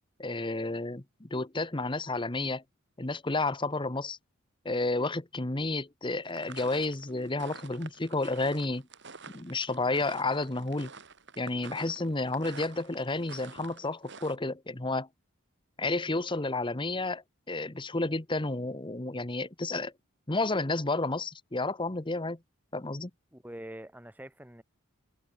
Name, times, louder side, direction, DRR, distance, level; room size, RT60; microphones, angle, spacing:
voice 1, 0.2-2.6 3.0-4.2 4.6-8.8 9.3-10.9 11.4-15.1 15.8-19.9 20.3-22.4 22.7-23.1, left 2 dB, 20° left, 1.1 m, -31 dB
sound 1, 6.3-14.4, right 5 dB, 55° right, 5.7 m, -48 dB
voice 2, 23.3-24.6, right 1 dB, 10° right, 3.7 m, -45 dB
head